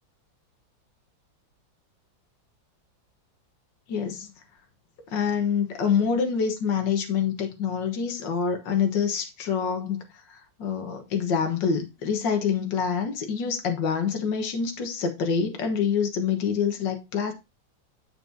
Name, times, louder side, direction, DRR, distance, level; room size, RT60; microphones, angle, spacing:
voice 1, 3.9-4.3 5.1-10.1 10.6-17.3, left 6 dB, 70° left, 2.0 m, -26 dB
7.9 x 7.4 x 2.8 m
omnidirectional pair, 2.1 m